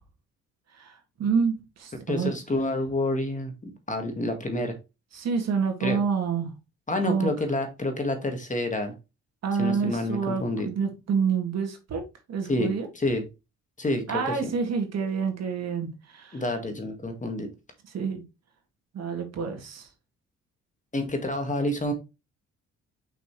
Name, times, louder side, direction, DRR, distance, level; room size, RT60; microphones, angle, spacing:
voice 1, 0.7-2.3 5.1-6.5 7.1-7.3 9.4-12.0 12.3-12.9 14.1-16.4 17.9-18.2 18.9-19.9, right 6 dB, 60° right, 2.3 m, -28 dB
voice 2, 2.1-4.7 5.8-6.0 6.9-8.9 9.6-10.7 12.5-13.2 13.8-14.5 16.3-17.5 20.9-21.9, left 1 dB, 25° left, 1.8 m, -28 dB
5.8 x 5.8 x 3.2 m
cardioid pair, 90°, 30 cm